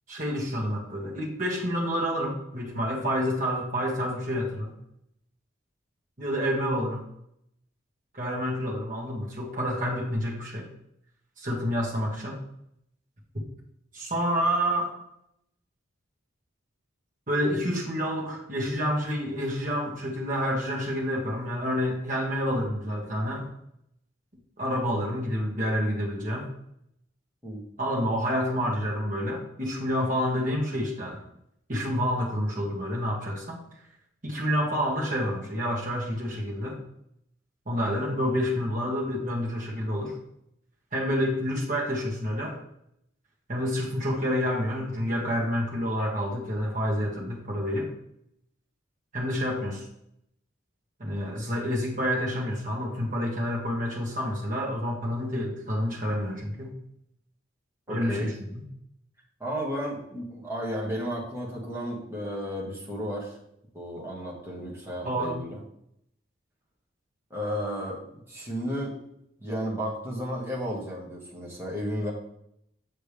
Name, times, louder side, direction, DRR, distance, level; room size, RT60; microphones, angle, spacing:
voice 1, 0.1-4.7 6.2-7.0 8.1-10.7 11.4-12.4 13.9-14.9 17.3-23.5 24.6-26.5 27.8-31.2 31.7-33.6 34.2-36.8 37.7-40.2 40.9-42.6 43.5-47.9 49.1-49.8 51.0-56.7 57.9-58.3 65.0-65.3, equal, 40° right, -3 dB, 1.6 m, -28 dB
voice 2, 57.9-58.3 59.4-63.4 63.7-65.6 67.3-69.0 69.4-72.1, equal, 15° right, -5 dB, 1.7 m, -33 dB
6.6 x 6.6 x 3.5 m, 0.74 s
head